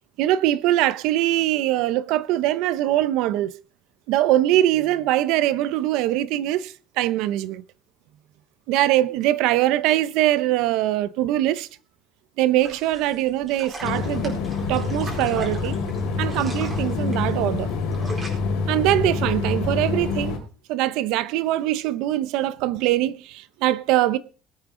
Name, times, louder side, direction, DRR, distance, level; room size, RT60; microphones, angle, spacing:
voice 1, 0.2-3.5 4.1-7.6 8.7-11.7 12.4-14.4 14.7-15.8 16.2-17.7 18.7-20.4 20.7-24.2, right 14 dB, 70° right, 0.7 m, -22 dB
sound 1, 12.6-18.3, right 2 dB, 20° right, 4.4 m, -40 dB
sound 2, 13.8-20.4, left 4 dB, 75° left, 4.2 m, -26 dB
20.5 x 8.9 x 3.8 m
cardioid pair, 165°, 0 cm